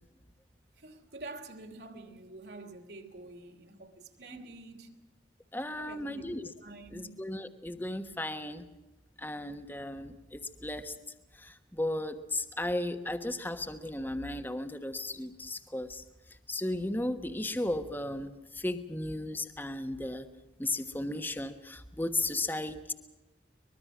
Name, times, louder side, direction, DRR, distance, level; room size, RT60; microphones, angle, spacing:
voice 1, 0.7-4.9 5.8-6.2 6.6-7.1, right 2 dB, 65° right, 3.1 m, -47 dB
voice 2, 5.5-6.5 6.9-8.7 9.2-11.0 11.4-16.0 16.5-20.3 20.6-22.9, left 1 dB, 10° left, 1.2 m, -35 dB
24.0 x 21.5 x 6.1 m
head